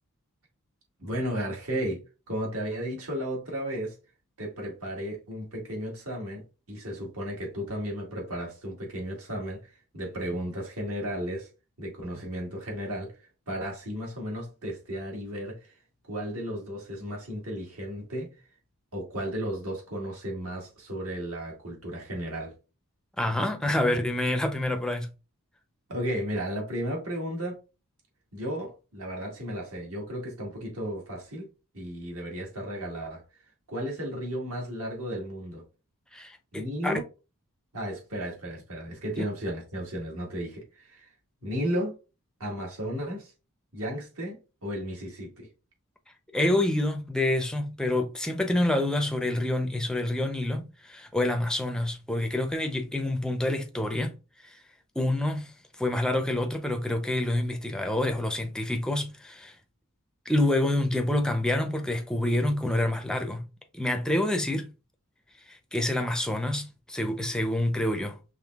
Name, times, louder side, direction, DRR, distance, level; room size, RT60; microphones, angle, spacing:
voice 1, 1.0-4.0 4.4-11.5 11.8-13.1 13.5-15.7 16.1-18.3 18.9-22.6 25.9-27.6 28.3-31.5 31.7-33.2 33.7-35.6 36.5-37.0 37.7-41.1 41.4-42.0 42.4-43.3 43.7-45.5, equal, 70° right, 1.7 m, -34 dB
voice 2, 23.2-25.1 36.1-36.9 39.2-39.3 46.3-54.2 55.0-55.5 55.8-59.5 60.3-63.4 63.7-64.7 65.5-68.1, left 1 dB, 5° left, 0.5 m, -27 dB
5.5 x 3.2 x 2.3 m
head